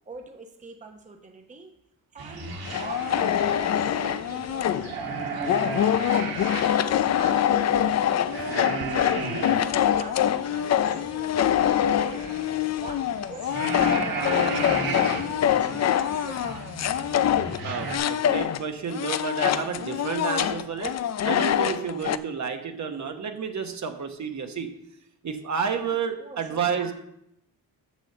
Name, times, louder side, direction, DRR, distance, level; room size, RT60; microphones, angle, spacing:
voice 1, 0.1-1.7 2.1-12.2 12.7-16.6 25.8-26.9, right 3 dB, 20° right, 3 dB, 0.9 m, -45 dB
sound 1, 2.2-18.0, right 4 dB, 70° right, 1.9 m, -35 dB
sound 2, 2.7-4.9 5.4-18.6 18.9-22.2, left 10 dB, 45° left, 0.4 m, -25 dB
voice 2, 17.6-20.9 21.2-24.7 25.2-26.9, right 6 dB, 50° right, 5 dB, 1.2 m, -30 dB
6.4 x 6.3 x 6.6 m, 0.77 s
cardioid pair, 105°, 37 cm